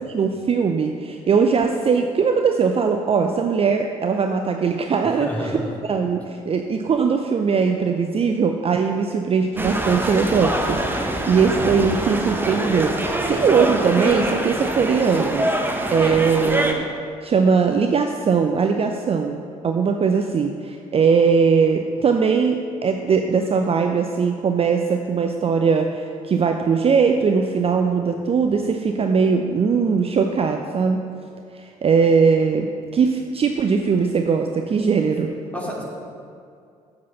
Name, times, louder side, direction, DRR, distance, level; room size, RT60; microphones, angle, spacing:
voice 1, 0.0-15.5 15.9-16.9 17.2-31.0 31.5-35.3, right 5 dB, 35° right, 4 dB, 0.6 m, -20 dB
voice 2, 5.2-5.7 35.5-35.8, equal, 5° left, -3 dB, 2.5 m, -28 dB
sound 1, 9.6-16.7, right 1 dB, 10° right, 1.1 m, -24 dB
7.4 x 6.1 x 6.9 m, 2.4 s
figure-of-eight pair, 45°, 18 cm